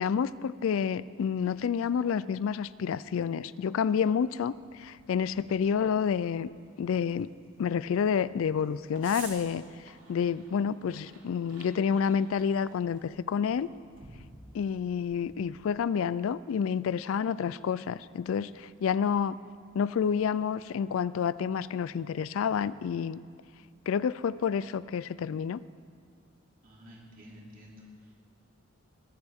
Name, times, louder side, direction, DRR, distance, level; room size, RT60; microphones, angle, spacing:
voice 1, 0.0-4.5 4.8-6.5 6.8-7.3 7.6-9.6 10.1-13.7 14.5-19.4 19.7-23.2 23.9-25.6, left 7 dB, 70° left, 17 dB, 0.3 m, -29 dB
sound 1, 4.5-15.5, right 4 dB, 60° right, 3.0 m, -53 dB
voice 2, 26.6-28.1, left 1 dB, 40° right, -3 dB, 2.9 m, -51 dB
21.5 x 14.0 x 3.6 m, 2.1 s
head